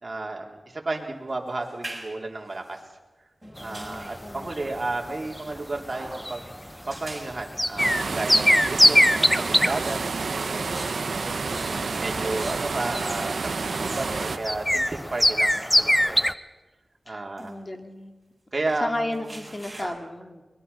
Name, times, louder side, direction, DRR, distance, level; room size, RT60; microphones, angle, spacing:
voice 1, 0.0-2.8 3.6-6.5 6.9-10.0 10.3-10.7 11.2-13.5 13.8-16.2 17.1-17.5 18.5-19.4 19.8-20.1, right 2 dB, 45° right, 1 dB, 3.9 m, -33 dB
sound 1, 0.9-2.8 3.4-4.3 5.9-6.6 6.8-7.4 7.8-8.0 9.7-9.8 10.2-15.6 16.3-16.4 17.4-17.5 18.5-19.8, right 1 dB, 25° right, 7.1 m, -45 dB
voice 2, 3.4-4.8 17.1-18.2 18.8-20.4, left 1 dB, 35° left, 5 dB, 2.6 m, -34 dB
sound 2, 3.6-16.3, equal, 5° left, 0.9 m, -25 dB
sound 3, 7.8-14.4, right 4 dB, 80° right, 1.1 m, -29 dB
23.0 x 21.0 x 5.8 m, 1.2 s
cardioid pair, 50°, 0 cm